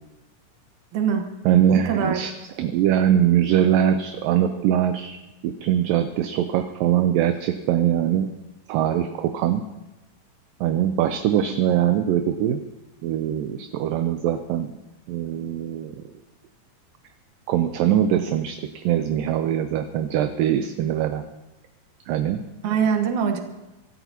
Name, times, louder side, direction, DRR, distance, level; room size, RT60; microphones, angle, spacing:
voice 1, 0.9-1.3 1.9-2.2 22.6-23.4, right 7 dB, 60° right, 4 dB, 2.6 m, -22 dB
voice 2, 1.5-5.2 5.4-8.3 8.7-9.6 10.6-12.6 13.0-14.7 15.1-16.0 17.5-21.2 22.1-22.4, right 10 dB, 80° right, 7 dB, 2.3 m, -22 dB
25.0 x 13.5 x 2.9 m, 1.0 s
omnidirectional pair, 4.2 m